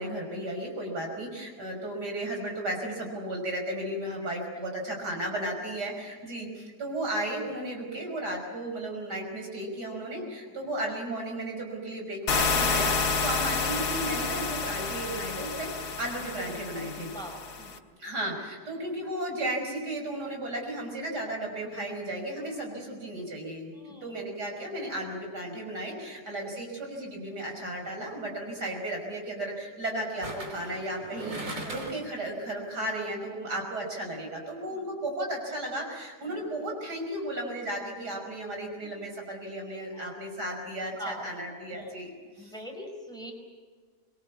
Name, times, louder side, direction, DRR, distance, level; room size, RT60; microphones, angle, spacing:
voice 1, 0.0-17.1 18.0-23.7 24.0-42.1 42.4-42.5, right 1 dB, 85° right, 1 dB, 6.2 m, -34 dB
sound 1, 12.3-17.8, left 4 dB, 75° left, 2.0 m, -29 dB
voice 2, 17.1-17.8 23.7-24.1 30.5-30.7 31.1-31.3 33.4-33.5 34.7-34.8 36.2-36.4 38.8-38.9 39.9-40.1 40.9-41.3 41.7-42.1 42.4-43.3, equal, ahead, 2 dB, 5.1 m, -44 dB
sound 2, 27.6-27.9 30.2-32.2 32.5-32.6, right 2 dB, 50° right, 3.6 m, -39 dB
24.0 x 22.5 x 8.4 m, 1.5 s
omnidirectional pair, 1.7 m